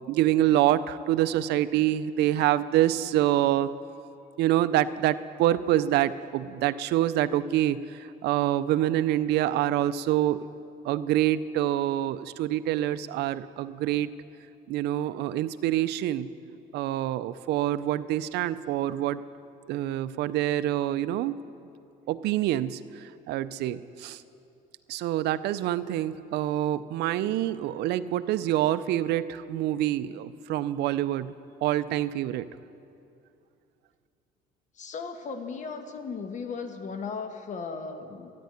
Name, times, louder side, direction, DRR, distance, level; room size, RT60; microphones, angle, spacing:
voice 1, 0.1-3.7 4.4-7.8 8.2-10.4 10.8-14.1 14.7-16.3 16.7-19.2 19.7-21.4 22.1-24.2 24.9-31.3 31.6-32.5, right 13 dB, 80° right, 14 dB, 0.5 m, -26 dB
voice 2, 34.8-38.3, left 5 dB, 45° left, 7 dB, 1.3 m, -36 dB
13.0 x 9.3 x 9.2 m, 2.6 s
cardioid pair, 110°, 17 cm